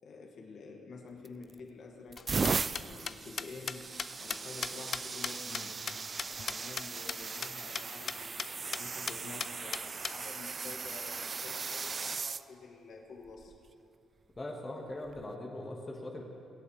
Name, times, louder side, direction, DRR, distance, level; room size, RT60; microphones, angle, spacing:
voice 1, 0.0-3.8 4.2-5.6 6.5-13.5, left 4 dB, 65° left, 0 dB, 2.0 m, -49 dB
sound 1, 1.3-1.6 2.1-12.4 13.3-13.6 15.1-15.2, right 4 dB, 35° right, 0.3 m, -38 dB
sound 2, 2.2-6.8 7.1-7.2 7.4-7.5 7.7-8.5 8.7-8.8 9.1-10.1, left 6 dB, 45° left, 0.4 m, -36 dB
voice 2, 14.4-16.2, left 1 dB, 25° left, -1 dB, 1.7 m, -41 dB
23.0 x 8.4 x 3.4 m, 2.5 s
cardioid pair, 90°, 0 cm